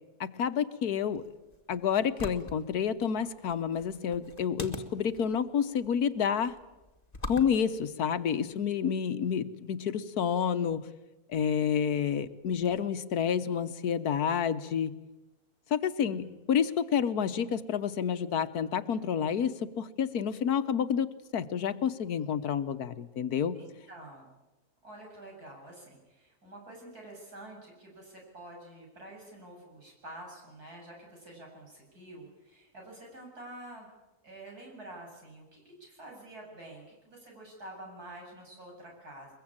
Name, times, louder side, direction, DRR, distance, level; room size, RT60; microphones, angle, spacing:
voice 1, 0.2-1.2 1.7-6.6 7.3-10.8 11.3-14.9 15.7-23.6, left 7 dB, 80° left, 12 dB, 1.6 m, -29 dB
sound 1, 1.1-8.7, left 2 dB, 25° left, 1.7 m, -45 dB
voice 2, 16.0-16.4 23.5-24.3 24.8-33.9 34.2-39.3, right 1 dB, 80° right, -1 dB, 8.4 m, -48 dB
23.0 x 22.0 x 8.8 m, 1.1 s
omnidirectional pair, 1.6 m